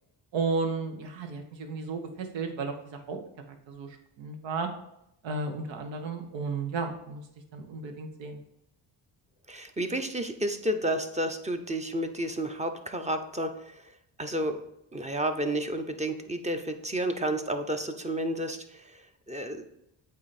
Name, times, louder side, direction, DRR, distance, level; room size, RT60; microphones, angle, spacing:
voice 1, 0.3-3.2 3.5-4.7 5.2-7.2 7.5-8.4, right 4 dB, 80° right, 6 dB, 1.1 m, -33 dB
voice 2, 9.5-13.9 14.2-14.6 14.9-19.7, right 1 dB, 15° right, 7 dB, 0.7 m, -31 dB
8.3 x 2.8 x 4.2 m, 0.80 s
cardioid pair, 75°, 44 cm